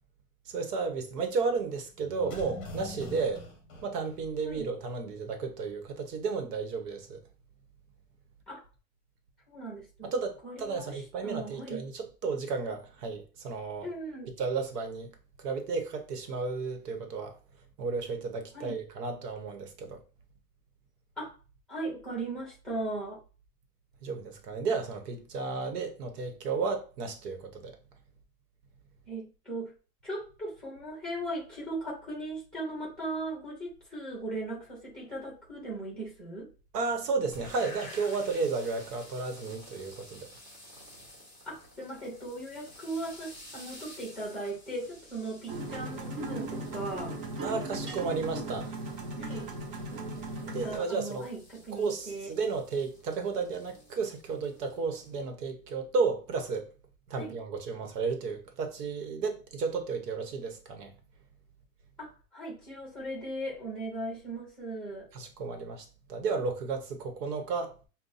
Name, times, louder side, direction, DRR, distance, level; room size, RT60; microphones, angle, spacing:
voice 1, 0.5-3.4 3.8-7.2 10.0-13.9 14.4-15.1 15.4-17.4 17.8-20.0 24.0-27.8 36.7-40.3 47.4-48.8 50.5-51.3 51.7-56.7 57.1-60.9 65.1-67.8, right 4 dB, 75° right, 1.0 m, -33 dB
sound 1, 2.0-4.9 5.1-5.2, left 1 dB, 25° left, 0.8 m, -43 dB
voice 2, 9.5-10.1 10.4-11.8 13.8-14.3 18.5-18.8 21.2-21.3 21.7-23.2 29.1-29.7 30.0-36.5 41.4-47.1 49.2-49.5 50.4-52.3 57.2-57.4 62.0-65.1, right 2 dB, ahead, 0.9 m, -38 dB
sound 2, 37.3-55.2, left 1 dB, 15° right, 1.4 m, -52 dB
sound 3, 45.5-50.8, right 2 dB, 35° right, 0.6 m, -37 dB
5.4 x 2.2 x 2.6 m
supercardioid pair, 175°, 47 cm